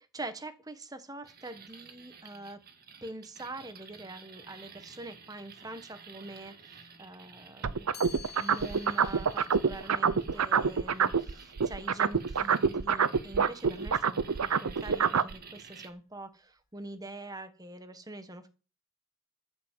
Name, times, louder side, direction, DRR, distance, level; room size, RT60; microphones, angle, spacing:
voice 1, 0.1-2.6 3.0-18.5, right 2 dB, 15° right, 10 dB, 1.2 m, -44 dB
sound 1, 1.3-15.9, right 5 dB, 40° right, 1.6 m, -52 dB
sound 2, 7.6-11.3 11.6-15.3, right 6 dB, 75° right, 0.7 m, -26 dB
Chime, 7.9-13.8, left 7 dB, 45° left, 2.6 m, -53 dB
13.5 x 5.6 x 7.5 m, 0.36 s
head